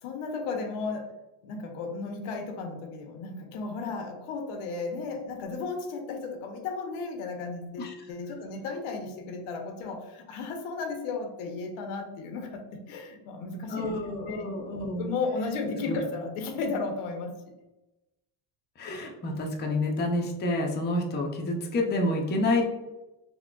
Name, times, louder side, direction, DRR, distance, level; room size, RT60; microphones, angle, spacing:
voice 1, 0.0-1.1 1.4-14.0 14.3-14.4 15.0-17.4, left 4 dB, 80° left, 4 dB, 0.7 m, -34 dB
voice 2, 13.7-15.1 15.9-16.0 18.8-22.7, left 1 dB, 20° left, 0 dB, 0.5 m, -28 dB
3.7 x 2.1 x 2.2 m, 1.0 s
cardioid pair, 105°, 50 cm